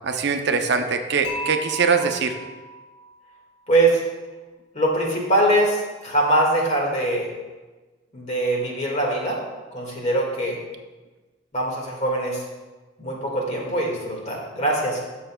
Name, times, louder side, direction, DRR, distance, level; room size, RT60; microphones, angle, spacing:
voice 1, 0.0-2.3, right 5 dB, 65° right, 6 dB, 0.6 m, -22 dB
Dishes pots and pans / Chink clink, 1.2-3.4, equal, 70° left, 2.8 m, -35 dB
voice 2, 3.7-4.0 4.7-7.3 8.1-9.4 9.7-10.6 11.5-12.4 13.0-15.0, right 1 dB, 40° left, -2 dB, 1.9 m, -22 dB
12.5 x 6.7 x 2.3 m, 1.2 s
head